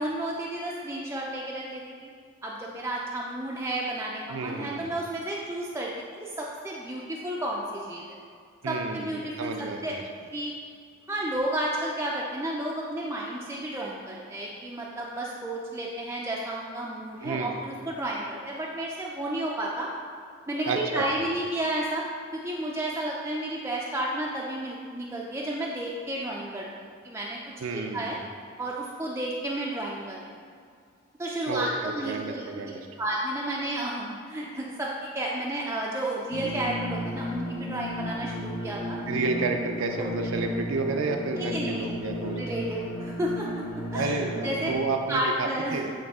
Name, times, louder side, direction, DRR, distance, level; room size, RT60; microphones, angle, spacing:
voice 1, 0.0-2.1 2.4-8.2 8.7-9.9 10.3-10.5 11.1-19.9 20.5-22.0 22.3-27.4 27.7-28.2 28.6-30.3 31.2-32.7 33.0-39.0 41.3-41.9 42.4-43.6 43.9-44.7 45.1-45.8, right 1 dB, 15° right, -3 dB, 0.4 m, -32 dB
voice 2, 4.3-4.9 8.6-10.0 17.2-17.6 20.7-21.0 27.6-28.1 31.5-32.9 39.1-42.4 43.9-45.9, right 3 dB, 70° right, 3 dB, 0.4 m, -31 dB
sound 1, 36.3-44.7, left 1 dB, 80° left, 0.9 m, -34 dB
8.7 x 3.1 x 3.5 m, 2.2 s
head